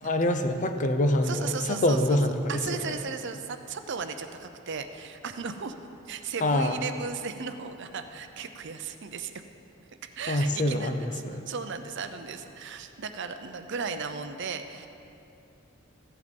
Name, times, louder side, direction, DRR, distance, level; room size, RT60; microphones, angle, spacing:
voice 1, 0.0-3.0 6.4-6.8 10.3-11.5, left 1 dB, 40° left, 7 dB, 0.6 m, -26 dB
voice 2, 1.2-2.2 2.5-5.7 6.1-9.3 10.0-14.9, right 5 dB, 60° right, 8 dB, 0.6 m, -36 dB
14.5 x 8.1 x 5.3 m, 3.0 s
head